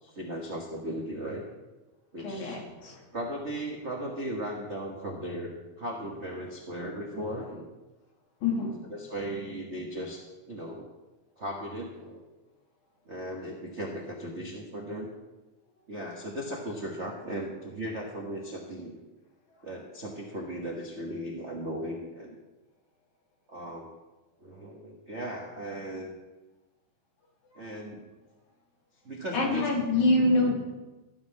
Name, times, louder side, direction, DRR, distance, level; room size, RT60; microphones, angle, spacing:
voice 1, 0.0-1.4 2.1-2.6 3.1-5.5 5.8-7.6 8.9-10.9 11.4-12.2 13.1-15.1 15.9-18.9 19.6-22.4 23.5-23.9 24.4-26.1 27.5-28.1 29.0-29.7, right 1 dB, 50° right, -1 dB, 0.8 m, -37 dB
voice 2, 2.2-3.0 8.4-8.8 29.3-30.5, left 2 dB, 75° left, -1 dB, 3.6 m, -25 dB
14.0 x 5.6 x 7.2 m, 1.1 s
omnidirectional pair, 3.5 m